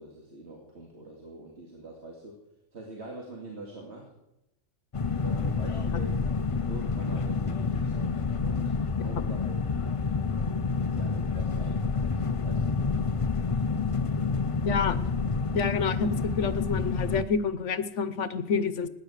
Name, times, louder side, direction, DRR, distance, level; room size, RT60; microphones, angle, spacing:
voice 1, 0.0-2.4 2.7-4.1 5.2-6.2 6.7-8.1 8.4-9.6 10.9-12.8, right 2 dB, 70° right, -1 dB, 2.6 m, -44 dB
sound 1, 4.9-17.2, left 4 dB, 35° left, 0.6 m, -28 dB
voice 2, 14.6-15.0 15.5-18.9, left 5 dB, 85° left, 13 dB, 1.2 m, -28 dB
16.5 x 10.0 x 8.2 m, 0.90 s
omnidirectional pair, 1.2 m